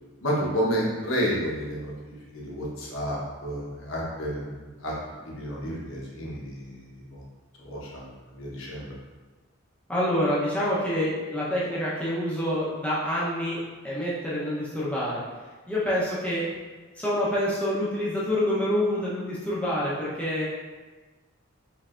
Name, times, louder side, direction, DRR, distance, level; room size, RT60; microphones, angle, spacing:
voice 1, 0.2-4.9 5.2-7.2 7.6-8.9, equal, 65° left, -4 dB, 1.1 m, -31 dB
voice 2, 9.9-15.2 15.7-16.4 17.0-20.5, left 1 dB, 5° left, -8 dB, 0.8 m, -27 dB
5.6 x 3.3 x 2.5 m, 1.3 s
head